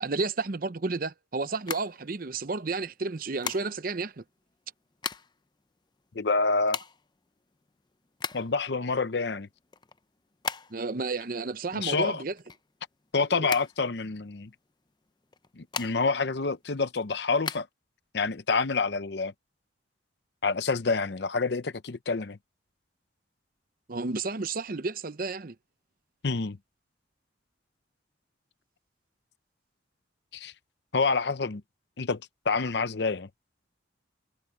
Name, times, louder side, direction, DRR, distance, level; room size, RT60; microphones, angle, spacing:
voice 1, 0.0-4.2 10.7-12.3 13.3-13.5 23.9-25.5, right 3 dB, 50° right, 0.7 m, -32 dB
sound 1, 1.5-2.6 3.4-4.0 4.7-5.5 5.8-5.9 6.1-8.7 9.1-11.0 11.3-13.1 13.4-14.4 15.2-16.3 16.6-17.6, left 6 dB, 25° left, 0.5 m, -37 dB
voice 2, 6.1-6.8 8.3-9.5 11.7-12.2 13.1-14.5 15.6-17.7 18.1-19.3 20.4-22.4 26.2-26.6 30.3-30.5 30.9-31.6 32.0-33.3, left 4 dB, 60° left, 0.7 m, -27 dB
head